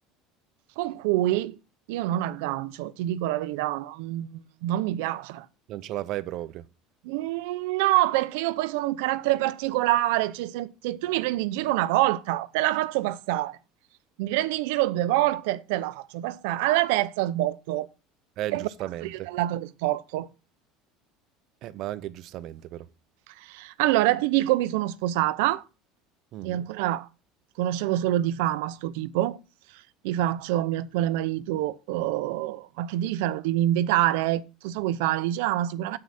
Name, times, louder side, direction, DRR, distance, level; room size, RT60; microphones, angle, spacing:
voice 1, 0.8-1.6 1.9-5.5 7.0-13.6 14.2-17.9 18.5-18.7 19.0-20.3 23.4-25.6 26.4-27.1 27.6-29.4 29.7-36.0, right 15 dB, 80° right, 0.7 m, -26 dB
voice 2, 5.7-6.6 18.4-19.3 21.6-22.9 26.3-26.7, right 14 dB, 50° right, 0.7 m, -34 dB
9.5 x 7.8 x 4.2 m
cardioid pair, 155°, 0 cm